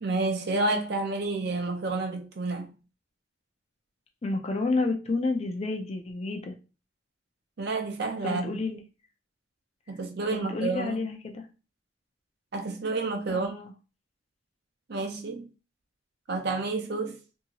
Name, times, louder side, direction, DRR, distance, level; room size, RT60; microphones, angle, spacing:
voice 1, 0.0-2.7 7.6-8.6 9.9-11.1 12.5-13.5 14.9-15.5 16.3-17.2, right 3 dB, 60° right, 0.6 m, -30 dB
voice 2, 4.2-6.6 8.2-8.8 10.3-11.4 13.3-13.7, left 3 dB, 35° left, 0.5 m, -30 dB
2.7 x 2.7 x 2.8 m
head